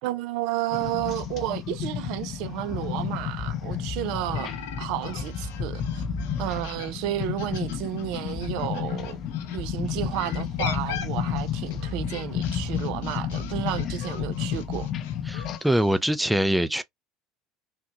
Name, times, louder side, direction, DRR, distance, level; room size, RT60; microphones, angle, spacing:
voice 1, 0.0-6.0 6.4-9.2 9.5-14.9, right 13 dB, 70° right, 0.5 m, -32 dB
sound 1, 0.7-15.6, left 8 dB, 50° left, 0.6 m, -31 dB
sound 2, 4.3-9.6 10.1-16.0, left 8 dB, 85° left, 0.8 m, -40 dB
voice 2, 15.3-16.8, right 1 dB, 5° right, 0.4 m, -23 dB
3.7 x 2.2 x 2.8 m
supercardioid pair, 90°, 0 cm